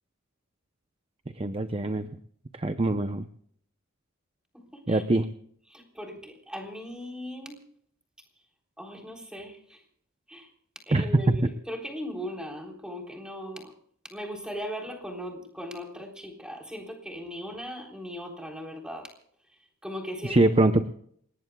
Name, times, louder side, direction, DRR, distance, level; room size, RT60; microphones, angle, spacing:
voice 1, 1.3-2.2 2.5-3.3 4.9-5.3 10.9-11.4 20.2-20.9, right 2 dB, 25° right, 9 dB, 0.7 m, -23 dB
voice 2, 4.5-5.0 5.7-7.6 8.8-9.8 10.3-10.5 10.9-13.7 14.1-19.1 19.8-20.4, equal, 5° right, 2 dB, 3.7 m, -38 dB
28.5 x 18.5 x 2.3 m, 0.64 s
head